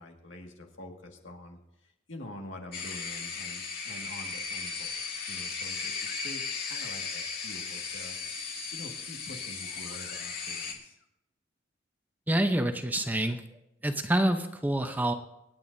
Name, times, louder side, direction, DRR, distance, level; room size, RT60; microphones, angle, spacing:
voice 1, 0.0-11.1, left 1 dB, 75° left, 2 dB, 1.9 m, -46 dB
sound 1, 2.7-10.7, left 5 dB, 50° left, 2.1 m, -36 dB
voice 2, 12.3-13.4 13.8-15.1, right 1 dB, 10° right, 6 dB, 0.7 m, -27 dB
27.0 x 9.1 x 2.7 m, 0.86 s
head